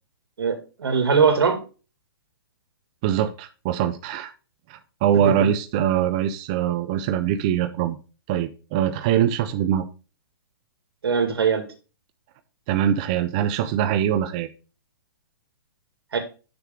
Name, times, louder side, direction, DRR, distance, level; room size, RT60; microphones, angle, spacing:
voice 1, 0.4-1.6 5.2-5.3 11.0-11.6 16.1-16.2, right 6 dB, 85° right, 6 dB, 2.2 m, -20 dB
voice 2, 3.0-4.3 4.7-8.0 8.3-9.8 12.7-14.5, right 10 dB, 20° right, 9 dB, 0.3 m, -23 dB
6.7 x 6.4 x 3.5 m, 0.33 s
hypercardioid pair, 170°, 12 cm